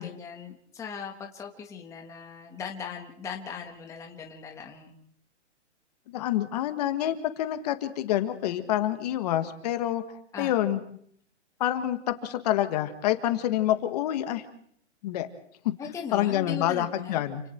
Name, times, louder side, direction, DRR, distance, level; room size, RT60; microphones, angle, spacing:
voice 1, 0.0-4.9 10.3-10.5 15.8-17.2, left 6 dB, 10° left, 2 dB, 1.6 m, -39 dB
voice 2, 6.1-10.0 10.4-10.8 11.6-14.4 15.0-15.3 16.1-17.4, left 12 dB, 35° left, 9 dB, 1.7 m, -27 dB
29.5 x 27.0 x 4.5 m, 0.63 s
hypercardioid pair, 165°, 36 cm